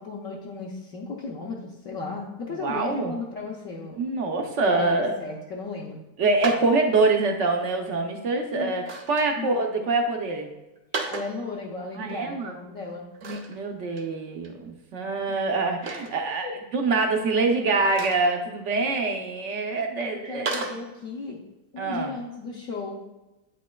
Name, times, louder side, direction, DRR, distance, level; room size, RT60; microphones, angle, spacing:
voice 1, 0.0-4.0 4.5-6.0 8.3-8.9 9.4-9.5 11.1-13.1 16.4-16.5 20.0-21.4 21.7-23.0, left 3 dB, 60° left, -2 dB, 1.0 m, -35 dB
voice 2, 2.6-3.1 4.0-5.1 6.2-10.5 12.0-12.6 13.2-16.5 16.7-20.5 21.8-22.1, right 3 dB, 65° right, 3 dB, 0.7 m, -25 dB
sound 1, 6.4-6.7 8.7-9.3 10.8-11.3 13.1-13.6 14.0-14.1 14.4-14.5 15.8-16.1 17.9-18.3 20.5-20.8, right 3 dB, 90° right, 0.4 m, -32 dB
8.5 x 5.2 x 2.2 m, 1.0 s
omnidirectional pair, 1.9 m